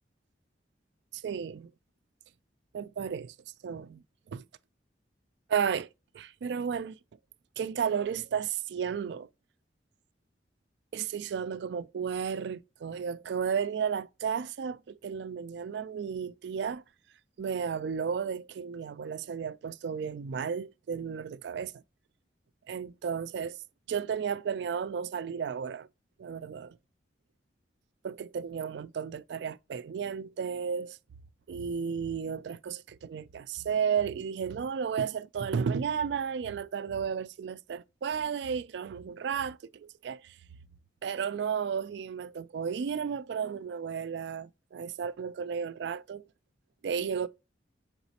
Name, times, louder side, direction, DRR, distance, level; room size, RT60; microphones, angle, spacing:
voice 1, 1.1-1.7 2.7-3.3 3.6-4.4 5.5-5.9 6.1-7.0 7.6-9.3 10.9-16.8 17.4-21.8 22.7-23.6 23.9-25.9 26.2-26.8 28.0-31.0 31.5-40.4 41.0-46.3 46.8-47.3, right 7 dB, 70° right, 0.3 m, -33 dB
4.0 x 4.0 x 2.8 m
head